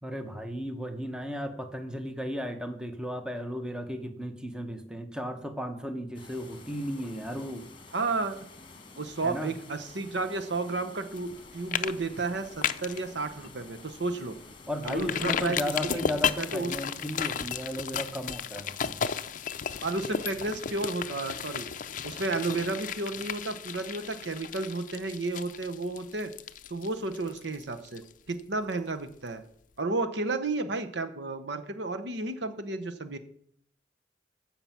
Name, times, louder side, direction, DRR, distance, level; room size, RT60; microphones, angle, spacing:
voice 1, 0.0-7.6 9.2-9.5 14.7-19.0, equal, 5° right, 6 dB, 1.0 m, -35 dB
sound 1, 6.1-17.3, left 3 dB, 30° left, 1.5 m, -50 dB
voice 2, 7.9-8.4 9.0-14.3 14.8-15.6 15.9-16.0 16.4-16.7 19.8-21.7 22.0-26.3 26.7-28.0 28.3-29.4 29.8-33.2, right 3 dB, 75° right, 9 dB, 1.0 m, -32 dB
sound 2, 11.2-11.4 11.7-11.9 12.2-13.0 13.4-13.5 13.9-14.0 14.8-28.4 28.7-28.8, left 7 dB, 45° left, 0.5 m, -34 dB
15.5 x 5.9 x 5.8 m, 0.66 s
head